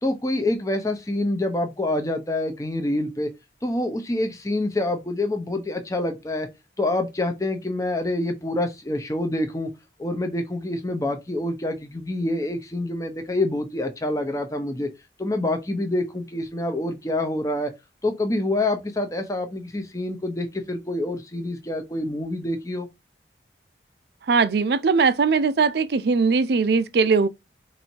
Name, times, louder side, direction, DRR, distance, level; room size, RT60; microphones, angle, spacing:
voice 1, 0.0-3.3 3.6-6.5 6.8-9.7 10.0-14.9 15.2-17.7 18.0-22.9, left 1 dB, 15° left, 0.7 m, -26 dB
voice 2, 24.3-27.3, right 4 dB, 60° right, 0.4 m, -20 dB
4.2 x 2.7 x 4.4 m
head